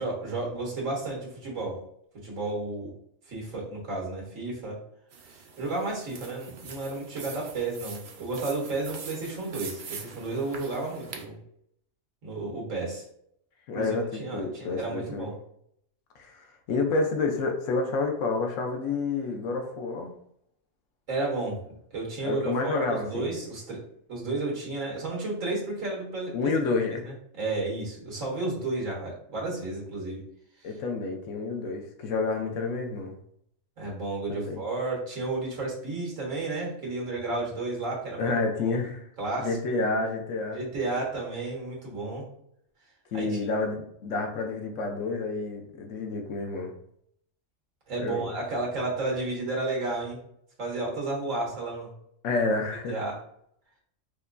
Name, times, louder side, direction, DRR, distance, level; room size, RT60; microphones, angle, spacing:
voice 1, 0.0-1.8 2.2-2.9 3.3-4.8 5.2-11.4 12.2-13.0 13.7-15.3 21.1-21.6 21.9-23.8 24.1-26.5 27.0-30.2 30.6-30.7 33.8-38.3 38.6-38.8 39.2-39.5 40.5-42.2 43.1-43.4 47.9-50.2 50.6-51.9 52.9-53.2, right 2 dB, 90° right, -3 dB, 1.6 m, -32 dB
sound 1, 5.1-11.2, right 5 dB, 60° right, 0.5 m, -43 dB
voice 2, 13.7-15.3 16.2-20.1 22.2-23.3 26.3-27.1 30.6-33.2 34.3-34.6 38.2-39.1 39.4-40.6 43.1-46.7 48.0-48.3 52.2-53.0, left 3 dB, 80° left, 3 dB, 1.0 m, -29 dB
4.9 x 2.2 x 2.5 m, 0.71 s
omnidirectional pair, 1.3 m